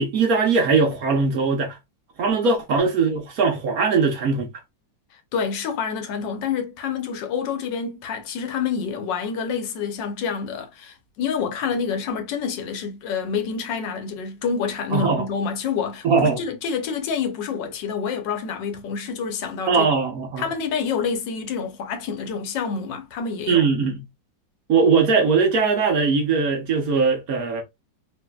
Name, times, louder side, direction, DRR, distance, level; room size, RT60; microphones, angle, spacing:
voice 1, 0.0-1.8 2.2-4.5 14.9-15.2 16.0-16.4 19.7-20.4 23.5-24.0 24.7-27.6, right 4 dB, 60° right, 1.1 m, -20 dB
voice 2, 5.1-19.9 20.4-23.7, left 6 dB, 80° left, 1.4 m, -28 dB
4.1 x 2.5 x 2.2 m
omnidirectional pair, 2.0 m